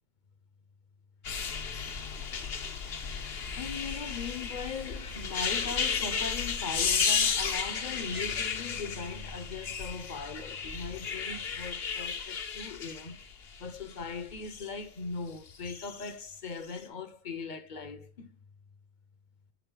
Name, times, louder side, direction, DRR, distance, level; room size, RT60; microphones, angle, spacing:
sound 1, 1.2-14.7 15.5-16.1 16.6-16.8, left 6 dB, 70° left, 1.1 m, -33 dB
voice 1, 3.6-13.2 13.6-18.3, left 5 dB, 50° left, 0.9 m, -39 dB
11.0 x 3.9 x 3.8 m
omnidirectional pair, 1.1 m